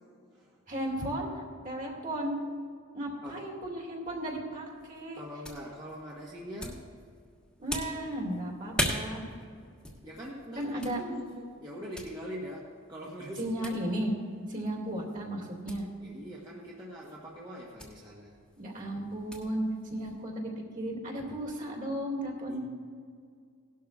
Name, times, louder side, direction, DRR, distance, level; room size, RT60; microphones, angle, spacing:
voice 1, 0.7-2.4 2.9-5.2 7.6-9.2 10.6-11.0 13.4-14.1 14.5-15.9 18.6-19.6 19.9-22.6, right 1 dB, 40° right, -2 dB, 2.3 m, -35 dB
sound 1, 4.6-20.2, left 1 dB, 5° left, 1.4 m, -42 dB
voice 2, 5.1-6.8 10.0-13.7 16.0-18.3 22.5-22.6, equal, 20° right, -6 dB, 1.2 m, -42 dB
18.0 x 12.0 x 2.4 m, 2.2 s
head